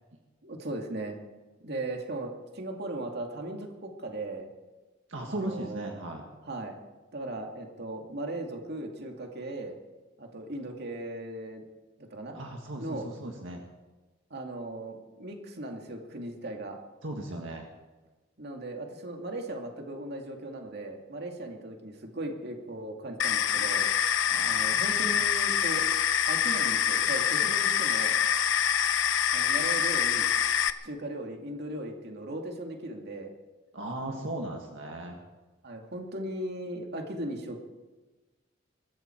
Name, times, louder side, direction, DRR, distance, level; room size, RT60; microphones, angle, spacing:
voice 1, 0.4-1.2 1.6-4.5 5.3-5.9 6.5-6.8 7.1-9.7 10.2-11.6 12.0-12.4 12.8-13.1 14.3-16.8 18.4-23.9 24.4-25.9 26.3-28.2 29.3-30.3 30.8-33.3 35.6-37.6, right 1 dB, 55° right, 3 dB, 2.3 m, -37 dB
voice 2, 5.1-6.2 12.3-13.6 17.0-17.6 24.3-25.2 33.7-35.2, right 1 dB, 75° right, 2 dB, 1.8 m, -37 dB
sound 1, 23.2-30.7, left 8 dB, 75° left, 0.8 m, -26 dB
23.0 x 13.5 x 4.5 m, 1.2 s
head